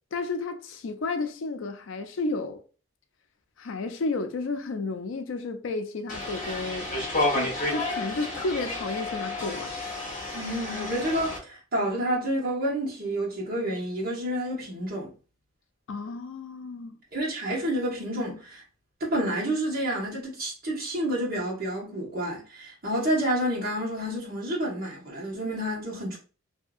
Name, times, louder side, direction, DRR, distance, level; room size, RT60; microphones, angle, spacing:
voice 1, 0.1-2.6 3.6-6.9 7.3-9.7 15.9-17.0, left 3 dB, 70° left, 0.4 m, -32 dB
sound 1, 6.1-11.4, left 2 dB, 40° left, 1.0 m, -31 dB
voice 2, 10.3-15.1 17.1-18.6 19.0-26.2, right 1 dB, 50° right, 1.2 m, -29 dB
2.7 x 2.6 x 2.3 m
head